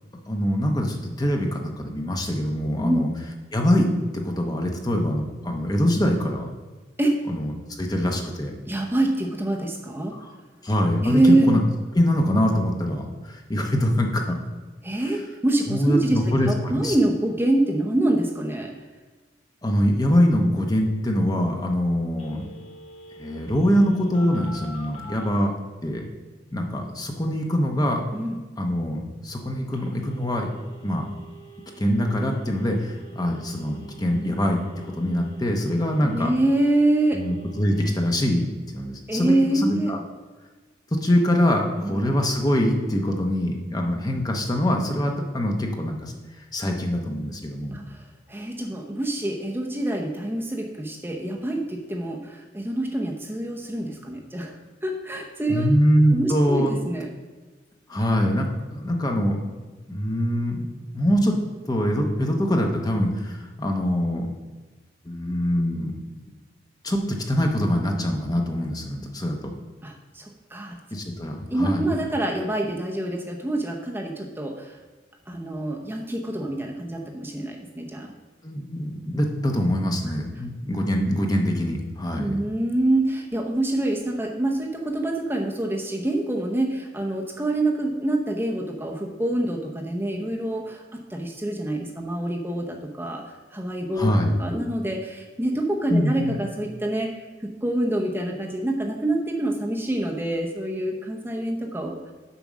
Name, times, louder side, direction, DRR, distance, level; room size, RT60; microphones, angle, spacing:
voice 1, 0.3-3.1 3.5-6.5 7.3-8.5 10.1-10.3 10.6-11.2 11.5-11.6 11.9-14.4 15.7-16.9 19.6-22.5 23.2-25.5 25.8-26.1 26.5-28.1 28.6-30.5 30.8-31.1 31.8-36.3 37.1-38.5 38.7-40.0 40.9-46.1 46.5-47.8 55.5-56.7 57.9-59.4 59.9-60.7 60.9-61.3 61.6-64.3 65.1-65.9 66.8-69.5 70.9-71.9 78.4-82.3 94.0-94.3 95.9-96.4, equal, 20° left, 2 dB, 0.8 m, -24 dB
voice 2, 8.7-10.1 11.0-11.5 14.8-18.7 28.1-28.4 36.0-37.2 39.1-39.9 41.8-42.0 47.7-54.6 54.8-55.8 56.1-57.1 69.8-70.8 71.5-74.8 75.3-78.1 80.1-80.2 82.2-94.1 94.4-102.1, right 1 dB, 10° right, 1 dB, 0.7 m, -26 dB
Telephone, 22.2-25.3 29.7-37.9, right 3 dB, 40° left, 2.5 m, -46 dB
7.0 x 5.3 x 6.2 m, 1.3 s
head